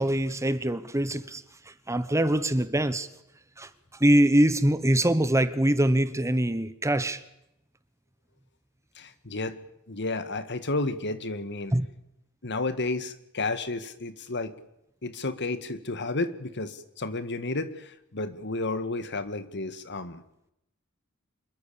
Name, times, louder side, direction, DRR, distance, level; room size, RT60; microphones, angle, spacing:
voice 1, 0.0-3.1 3.6-3.7 4.0-7.2 11.7-11.9, right 1 dB, 15° right, 1.0 m, -24 dB
voice 2, 9.0-9.6 9.9-11.7 12.4-14.5 15.0-20.2, left 2 dB, 55° left, 1.8 m, -32 dB
26.5 x 22.0 x 7.0 m
head